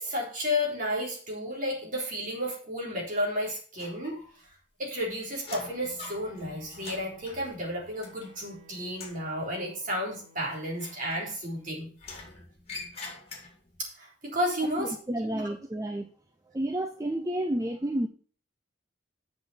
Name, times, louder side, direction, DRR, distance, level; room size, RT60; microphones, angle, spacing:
voice 1, 0.0-4.2 4.8-11.9 13.8-14.9 15.3-15.4, equal, 40° right, 3.8 m, -32 dB
sound 1, 3.8-4.5 4.8-8.6 8.9-9.3 10.7-11.6 12.0-13.8, left 3 dB, 30° left, 2.4 m, -45 dB
Bowed string instrument, 5.7-11.1, left 1 dB, 60° right, 3.2 m, -58 dB
voice 2, 14.8-16.1 16.5-18.1, right 1 dB, 15° right, 0.6 m, -31 dB
7.9 x 5.9 x 7.0 m
head